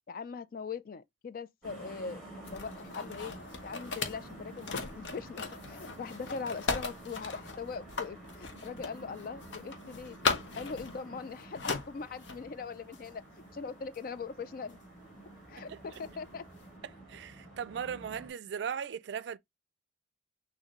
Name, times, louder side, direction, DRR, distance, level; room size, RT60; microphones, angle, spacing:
voice 1, 0.1-2.2 2.5-3.3 3.6-10.2 10.6-13.2 13.5-14.8 15.5-16.4, left 5 dB, 50° left, 0.3 m, -41 dB
sound 1, 1.6-18.3, right 1 dB, 5° left, 3.0 m, -50 dB
sound 2, 2.4-12.5 12.9-13.1 13.9-14.0 14.7-14.8 15.9-16.3, left 4 dB, 85° left, 0.8 m, -38 dB
voice 2, 17.1-19.4, right 7 dB, 70° right, 0.3 m, -37 dB
6.4 x 2.6 x 2.9 m
head